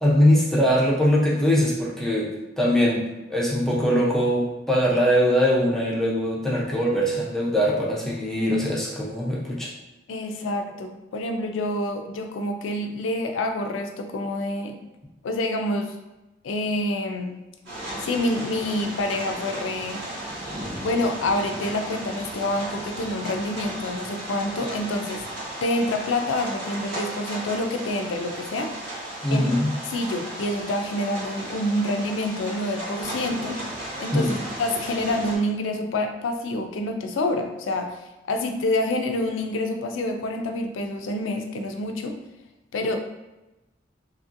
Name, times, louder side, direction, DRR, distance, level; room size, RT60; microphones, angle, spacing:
voice 1, 0.0-2.3 2.6-9.7 29.2-29.7 34.1-34.4, equal, ahead, -5 dB, 0.6 m, -22 dB
voice 2, 10.1-14.8 15.2-16.0 16.4-17.4 18.0-20.0 20.8-28.7 29.3-29.5 29.9-33.6 34.0-34.3 34.6-42.2 42.7-43.0, left 1 dB, 80° left, 5 dB, 0.4 m, -27 dB
sound 1, 17.6-35.4, right 1 dB, 80° right, 1.4 m, -35 dB
2.9 x 2.5 x 2.5 m, 1.0 s
head